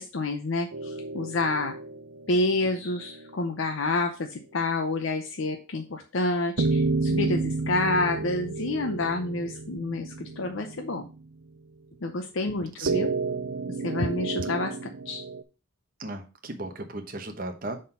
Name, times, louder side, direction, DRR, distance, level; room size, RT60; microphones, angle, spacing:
voice 1, 0.0-1.7 2.3-11.0 12.0-13.1 13.7-14.7 15.1-15.2, left 2 dB, 75° left, 5 dB, 0.7 m, -28 dB
sound 1, 0.7-3.4 6.6-11.2 12.9-15.4, right 3 dB, 75° right, 0.6 m, -31 dB
voice 2, 16.0-17.8, right 2 dB, 45° right, 4 dB, 0.9 m, -36 dB
6.4 x 3.8 x 5.5 m, 0.33 s
head